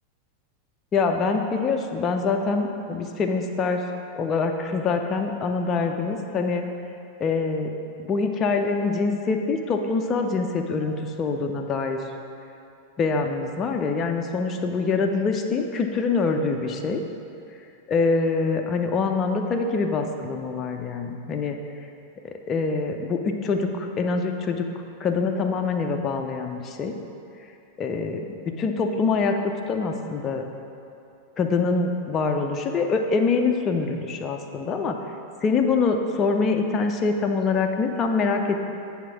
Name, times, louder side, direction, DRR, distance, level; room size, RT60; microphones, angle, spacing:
voice 1, 0.9-3.8 4.2-6.6 7.2-7.7 8.0-12.0 13.0-17.0 17.9-21.6 22.5-24.7 25.0-26.9 27.8-28.2 28.6-30.4 31.4-35.0 35.4-38.7, left 4 dB, 25° left, 4 dB, 0.5 m, -24 dB
9.2 x 3.6 x 6.0 m, 2.7 s
figure-of-eight pair, 90°, 0 cm